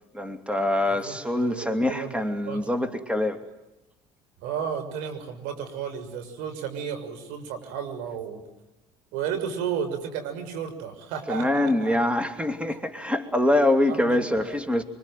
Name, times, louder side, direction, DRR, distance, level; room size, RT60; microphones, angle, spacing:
voice 1, 0.1-3.4 11.3-14.8, left 1 dB, 10° right, 10 dB, 2.9 m, -24 dB
voice 2, 0.8-2.1 2.5-2.7 4.4-8.4 9.1-12.0 13.9-14.2 14.5-14.6, right 7 dB, 80° right, 7 dB, 6.6 m, -33 dB
25.5 x 25.0 x 9.3 m, 0.96 s
supercardioid pair, 80°, 14 cm